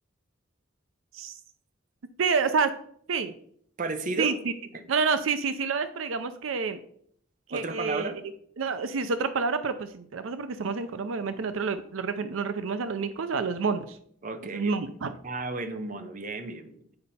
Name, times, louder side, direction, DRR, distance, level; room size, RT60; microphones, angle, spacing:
voice 1, 2.2-2.7 3.1-3.3 4.2-4.5 4.9-6.8 7.5-8.1 8.6-14.0 14.5-15.2, right 5 dB, 85° right, 11 dB, 0.5 m, -28 dB
voice 2, 3.8-4.4 7.5-8.2 14.2-14.7 15.2-16.8, right 3 dB, 40° right, 8 dB, 0.8 m, -33 dB
8.8 x 5.2 x 4.2 m, 0.65 s
head